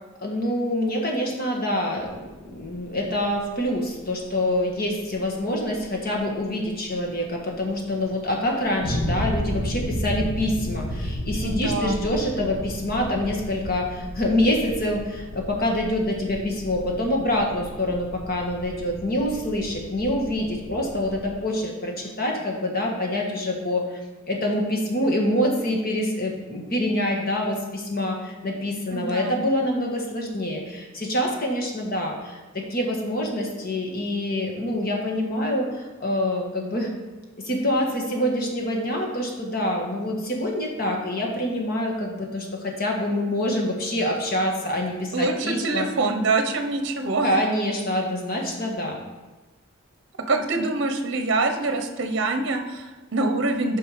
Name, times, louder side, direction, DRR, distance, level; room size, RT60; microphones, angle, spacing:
voice 1, 0.2-24.0 24.3-36.9 37.4-45.9 47.2-49.0, left 1 dB, 45° left, 0 dB, 1.5 m, -26 dB
sound 1, 2.0-21.3, equal, 80° left, 1.2 m, -33 dB
voice 2, 11.4-12.0 28.9-29.4 45.1-47.4 50.3-53.8, right 3 dB, 50° right, 5 dB, 0.8 m, -25 dB
8.6 x 5.6 x 5.0 m, 1.2 s
head